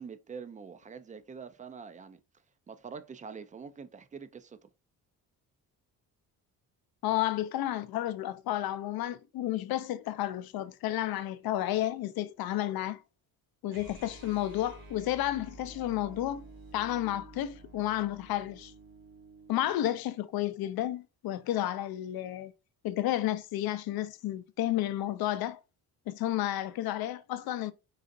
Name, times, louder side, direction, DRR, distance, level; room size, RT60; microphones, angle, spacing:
voice 1, 0.0-2.2 2.7-4.7, right 6 dB, 20° right, 0.4 m, -45 dB
voice 2, 7.0-13.0 13.6-16.5 16.7-18.7 19.5-22.5 22.8-25.6 26.1-27.7, left 13 dB, 65° left, 0.5 m, -31 dB
sound 1, 13.7-19.8, right 2 dB, 60° right, 1.3 m, -51 dB
4.0 x 2.4 x 2.6 m
cardioid pair, 85°, 39 cm